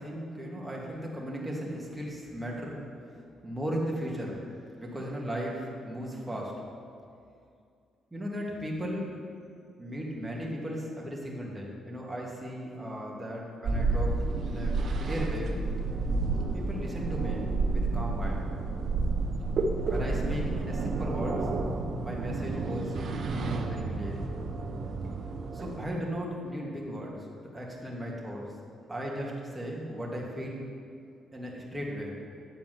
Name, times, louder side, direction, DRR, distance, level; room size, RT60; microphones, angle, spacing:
voice 1, 0.0-2.8 3.4-6.5 8.1-9.1 9.8-14.1 14.5-15.6 16.5-18.5 19.8-21.5 22.0-23.0 23.2-24.2 25.5-27.3 27.5-28.5 28.9-30.6 31.3-32.2, equal, 10° right, -4 dB, 2.1 m, -36 dB
sound 1, 13.6-25.9, right 3 dB, 60° right, 0.8 m, -30 dB
9.3 x 4.6 x 7.7 m, 2.4 s
cardioid pair, 90°, 0 cm